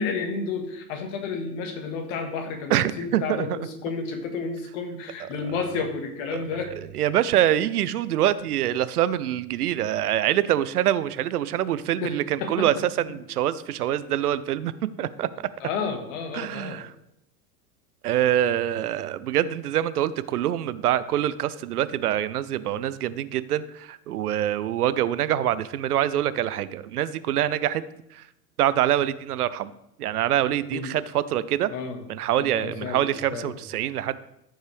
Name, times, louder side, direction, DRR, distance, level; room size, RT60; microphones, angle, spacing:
voice 1, 0.0-6.7 12.0-12.7 15.6-16.8 30.7-30.9 31.7-32.0 32.4-33.0 33.3-33.5, left 5 dB, 55° left, 5 dB, 1.7 m, -31 dB
voice 2, 2.7-3.7 5.2-5.3 6.3-6.4 6.9-14.7 15.0-15.3 16.3-16.9 18.0-27.8 28.1-28.3 28.6-29.7 30.0-31.7 32.1-34.2, right 12 dB, 70° right, 16 dB, 0.6 m, -25 dB
13.5 x 5.3 x 3.3 m, 0.79 s
figure-of-eight pair, 85°, 47 cm